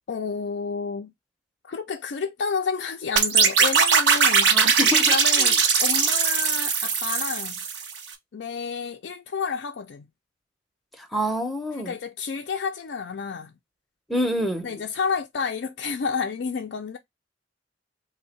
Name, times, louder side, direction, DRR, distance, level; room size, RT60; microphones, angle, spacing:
voice 1, 0.1-1.1 1.6-4.6 5.1-7.6 8.3-10.1 11.7-13.5 14.6-17.0, left 5 dB, 60° left, 0.4 m, -30 dB
sound 1, 3.2-8.0, right 6 dB, 70° right, 0.7 m, -20 dB
voice 2, 4.5-5.5 11.0-11.9 14.1-14.8, equal, ahead, 0.6 m, -27 dB
3.5 x 2.1 x 4.0 m
head